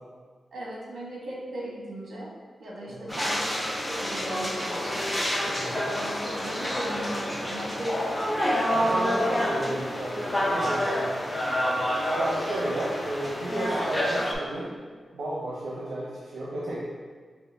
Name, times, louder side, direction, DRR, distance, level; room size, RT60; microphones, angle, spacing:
voice 1, 0.5-2.3 2.6-5.0 5.9-8.0, right 1 dB, 65° right, -5 dB, 1.2 m, -37 dB
sound 1, 3.1-14.3, equal, 15° left, 0.5 m, -28 dB
voice 2, 5.5-5.8 8.7-11.2 12.1-14.7 15.1-16.8, right 1 dB, 85° right, -6 dB, 0.7 m, -33 dB
5.7 x 2.1 x 3.4 m, 1.5 s
wide cardioid pair, 170°, 0 cm